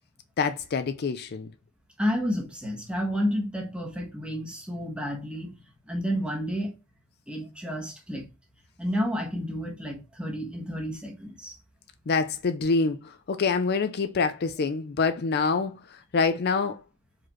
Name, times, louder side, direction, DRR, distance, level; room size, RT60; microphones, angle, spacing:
voice 1, 0.4-1.5 12.1-15.8 16.1-16.8, left 4 dB, 45° left, 0.4 m, -26 dB
voice 2, 2.0-5.6 5.9-6.7 7.3-8.2 8.8-11.6, equal, 5° right, 1.4 m, -30 dB
4.9 x 4.3 x 4.4 m
head